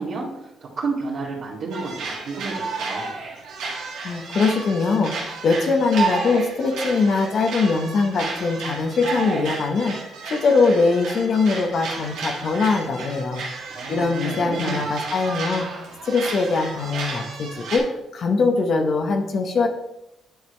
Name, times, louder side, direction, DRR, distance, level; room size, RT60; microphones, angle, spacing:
voice 1, 0.0-3.2 13.7-14.8, right 3 dB, 65° right, -8 dB, 2.2 m, -31 dB
sound 1, 1.7-17.8, right 4 dB, 90° right, 1.9 m, -32 dB
voice 2, 4.0-9.9 10.3-13.5 13.9-15.7 16.0-17.9 18.1-19.7, left 4 dB, 60° left, 4 dB, 0.9 m, -22 dB
10.0 x 5.0 x 3.3 m, 0.88 s
cardioid pair, 90°, 0 cm